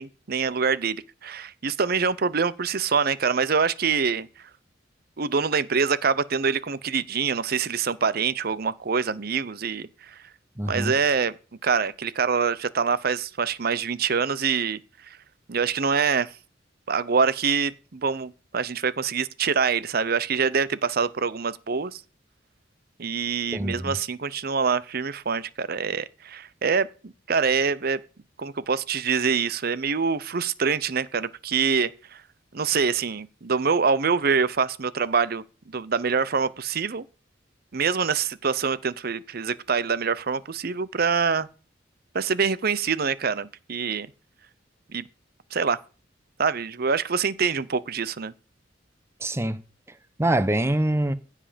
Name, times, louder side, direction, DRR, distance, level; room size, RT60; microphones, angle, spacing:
voice 1, 0.0-4.3 5.2-10.2 10.7-11.3 11.6-15.2 15.5-16.3 16.9-22.0 23.0-28.0 28.4-32.2 32.5-37.1 37.7-41.5 42.1-44.1 44.9-45.1 45.5-45.8 46.4-48.3, right 5 dB, 55° right, 0.7 m, -25 dB
voice 2, 10.6-10.9 23.5-23.9 49.2-49.6 50.2-51.1, right 1 dB, 15° right, 0.8 m, -24 dB
16.0 x 7.4 x 5.2 m
head